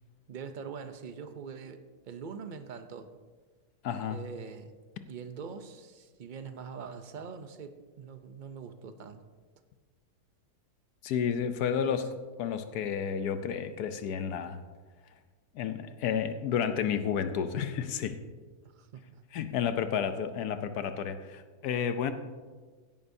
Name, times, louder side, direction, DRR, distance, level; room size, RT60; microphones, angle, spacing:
voice 1, 0.3-1.8 2.1-3.1 4.1-4.7 5.1-9.2 11.8-12.1 18.6-19.2, right 6 dB, 60° right, 8 dB, 0.5 m, -43 dB
voice 2, 3.8-4.2 11.0-12.1 12.4-14.6 15.5-18.1 19.3-22.1, left 7 dB, 80° left, 10 dB, 1.2 m, -31 dB
16.5 x 10.5 x 2.7 m, 1.4 s
omnidirectional pair, 1.7 m